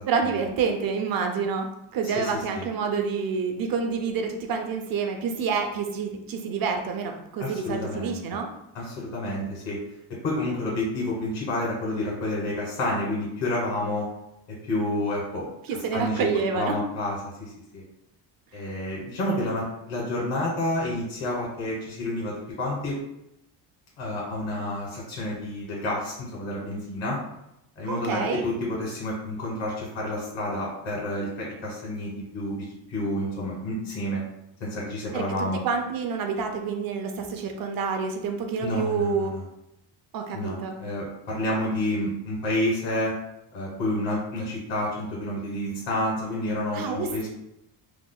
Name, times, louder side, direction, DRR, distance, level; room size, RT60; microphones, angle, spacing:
voice 1, 0.1-1.7 1.9-8.5 15.7-16.8 27.9-28.4 35.1-39.3 40.1-40.8 46.7-47.3, right 5 dB, 50° right, 4 dB, 0.6 m, -28 dB
voice 2, 2.0-2.7 7.4-8.4 8.7-9.8 10.2-14.1 14.6-15.5 15.9-16.3 16.5-17.8 18.5-23.0 24.0-27.2 27.8-34.2 34.6-35.6 38.6-39.4 40.3-43.1 43.5-47.3, left 1 dB, 85° left, -5 dB, 1.4 m, -29 dB
3.8 x 2.9 x 2.2 m, 0.82 s
cardioid pair, 155°, 45 cm